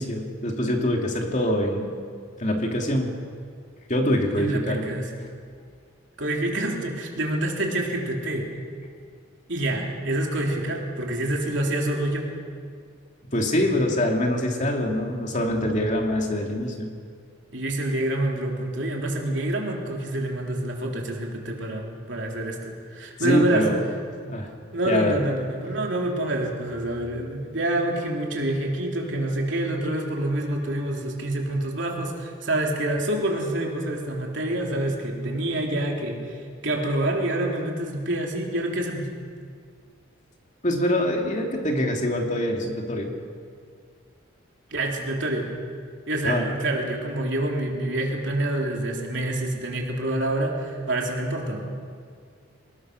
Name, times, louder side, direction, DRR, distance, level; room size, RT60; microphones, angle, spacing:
voice 1, 0.0-1.9 2.4-3.1 3.9-4.8 13.3-16.9 23.2-23.8 24.2-24.5 24.9-25.2 40.6-43.1 46.2-46.5, left 1 dB, 35° left, 1 dB, 2.7 m, -24 dB
voice 2, 4.4-5.1 6.2-8.5 9.5-12.3 17.5-23.7 24.7-39.1 44.7-45.5 46.1-51.7, right 1 dB, 60° right, 0 dB, 3.6 m, -27 dB
25.0 x 20.0 x 6.4 m, 2.1 s
head